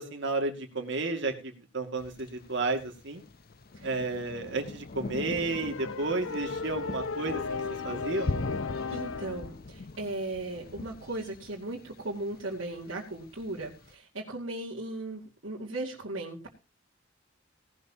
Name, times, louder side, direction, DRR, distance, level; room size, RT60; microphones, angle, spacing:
voice 1, 0.0-3.2 3.8-7.6 7.8-8.3, right 3 dB, 65° right, 4 dB, 2.4 m, -32 dB
Thunder, 2.0-13.9, left 2 dB, 50° left, 0.7 m, -41 dB
sound 1, 5.5-9.5, left 4 dB, 90° left, 0.8 m, -36 dB
voice 2, 8.9-16.5, right 2 dB, 85° right, -5 dB, 2.5 m, -37 dB
17.5 x 12.5 x 3.0 m, 0.31 s
head